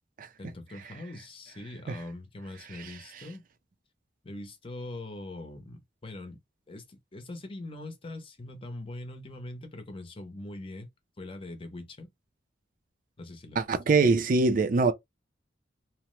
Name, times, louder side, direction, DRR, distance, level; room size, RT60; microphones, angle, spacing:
voice 1, 0.4-3.4 4.2-6.4 6.7-10.9 11.2-12.1 13.2-13.8, left 2 dB, 30° left, 0.7 m, -42 dB
voice 2, 13.6-14.9, right 3 dB, 50° right, 0.4 m, -23 dB
2.9 x 2.0 x 3.0 m
head